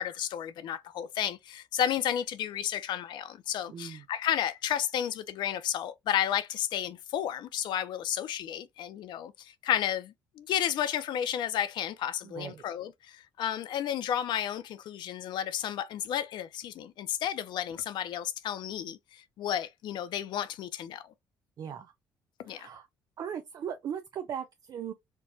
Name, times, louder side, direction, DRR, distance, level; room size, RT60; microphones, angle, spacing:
voice 1, 0.0-21.0 22.4-22.7, left 10 dB, 70° left, 0.5 m, -32 dB
voice 2, 3.7-4.1 12.2-12.6 21.6-21.9 22.5-22.9 23.2-24.9, right 8 dB, 55° right, 0.5 m, -38 dB
4.4 x 2.2 x 2.6 m
cardioid pair, 115°, 8 cm